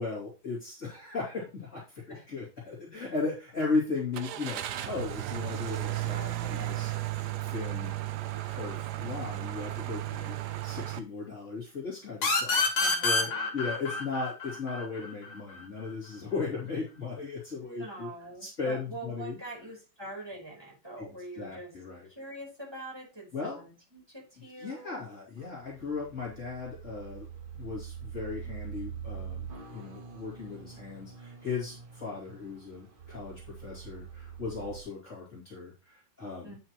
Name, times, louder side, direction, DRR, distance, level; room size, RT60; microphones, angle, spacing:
voice 1, 0.0-6.9 7.4-7.9 8.5-18.1 18.4-19.4 21.0-21.1 21.4-22.1 23.3-23.6 24.6-27.3 27.5-29.5 29.7-36.6, left 4 dB, 35° left, -5 dB, 3.1 m, -37 dB
Car / Engine starting, 4.1-11.0, right 15 dB, 70° right, 1.1 m, -34 dB
sound 1, 12.2-15.6, left 3 dB, 65° left, 2.2 m, -28 dB
voice 2, 12.8-13.5 17.6-21.7 22.1-24.9 36.4-36.6, right 1 dB, 10° right, -4 dB, 4.5 m, -44 dB
sound 2, 25.4-34.8, right 7 dB, 35° right, 1.0 m, -44 dB
9.2 x 6.3 x 3.1 m, 0.29 s
omnidirectional pair, 2.1 m